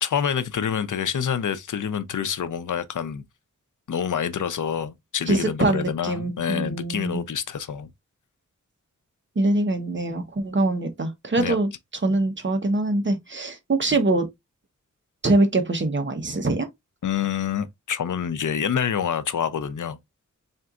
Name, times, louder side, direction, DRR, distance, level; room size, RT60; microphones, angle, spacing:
voice 1, 0.0-3.2 3.9-7.9 11.4-11.6 17.0-20.0, left 8 dB, 80° left, 0.6 m, -27 dB
voice 2, 5.3-7.3 9.4-11.7 12.0-14.3 15.2-16.7, right 2 dB, 40° right, 1.0 m, -23 dB
4.3 x 4.0 x 2.4 m
wide cardioid pair, 125°, 30 cm